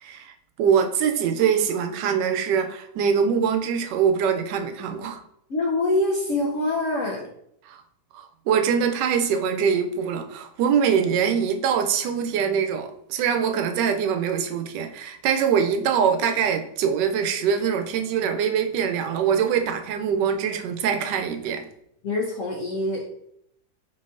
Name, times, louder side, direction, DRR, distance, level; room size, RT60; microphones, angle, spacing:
voice 1, 0.0-5.2 7.7-7.8 8.1-21.7, right 7 dB, 90° right, 1.2 m, -23 dB
voice 2, 5.5-7.3 22.0-23.0, left 2 dB, 65° left, 0.8 m, -25 dB
4.6 x 3.9 x 2.5 m
omnidirectional pair, 1.8 m